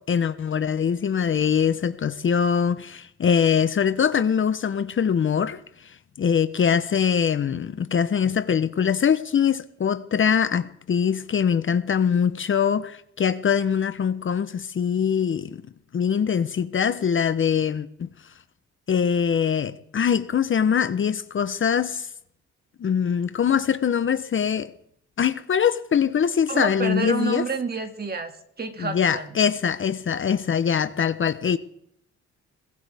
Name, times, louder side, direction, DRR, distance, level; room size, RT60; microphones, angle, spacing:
voice 1, 0.0-15.6 15.9-18.1 18.9-22.1 22.8-24.7 25.2-27.4 28.8-31.6, left 7 dB, 40° left, 0.9 m, -23 dB
voice 2, 26.5-29.3, right 4 dB, 30° right, 2.3 m, -29 dB
22.5 x 16.5 x 3.5 m
cardioid pair, 90°, 30 cm